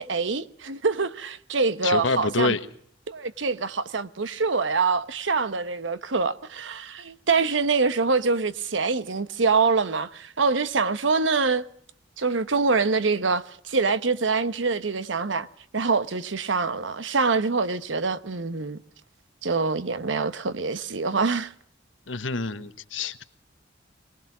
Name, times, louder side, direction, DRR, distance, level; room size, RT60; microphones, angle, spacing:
voice 1, 0.0-2.5 3.1-11.6 12.2-15.5 15.7-18.8 19.4-21.5, right 4 dB, 75° right, 1.0 m, -25 dB
voice 2, 1.8-2.6 22.1-23.2, left 3 dB, 85° left, 1.3 m, -26 dB
23.5 x 20.0 x 6.1 m
head